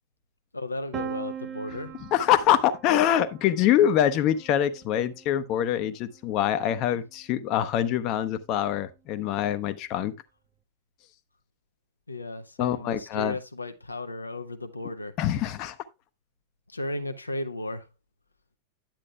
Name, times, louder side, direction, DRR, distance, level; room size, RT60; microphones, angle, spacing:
voice 1, 0.5-1.9 12.1-15.1 16.7-17.9, left 2 dB, 80° left, 0.6 m, -35 dB
Piano, 0.9-6.7, right 8 dB, 25° right, 0.6 m, -42 dB
voice 2, 2.1-10.1 12.6-13.3 15.2-15.8, left 11 dB, 40° left, 0.7 m, -24 dB
10.5 x 8.4 x 2.3 m
figure-of-eight pair, 90°, 0 cm